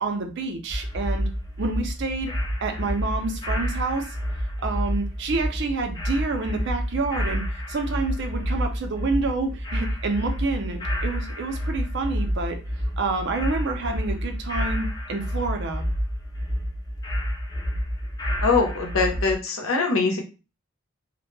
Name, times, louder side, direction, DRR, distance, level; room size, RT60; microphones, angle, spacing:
voice 1, 0.0-1.3 1.6-2.3 2.6-4.1 4.6-12.6 13.0-15.8, right 3 dB, 60° right, 5 dB, 0.5 m, -28 dB
sound 1, 0.7-19.4, equal, 20° left, 0.4 m, -29 dB
voice 2, 18.4-20.2, left 4 dB, 85° left, 2 dB, 0.7 m, -22 dB
2.1 x 2.1 x 3.1 m, 0.31 s
head